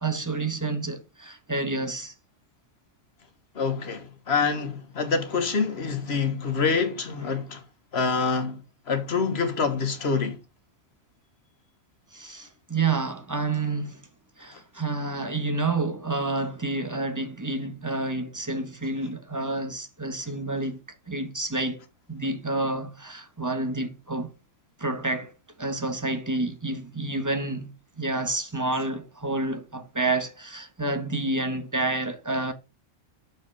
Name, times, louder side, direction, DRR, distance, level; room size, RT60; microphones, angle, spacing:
voice 1, 0.0-2.1 12.1-14.0 14.4-20.8 21.1-24.3 24.8-25.3 25.6-32.5, right 2 dB, 15° right, 1.1 m, -29 dB
voice 2, 3.5-7.6 7.9-8.6 8.9-10.4, left 5 dB, 55° left, 1.5 m, -26 dB
6.5 x 4.8 x 6.2 m
omnidirectional pair, 1.3 m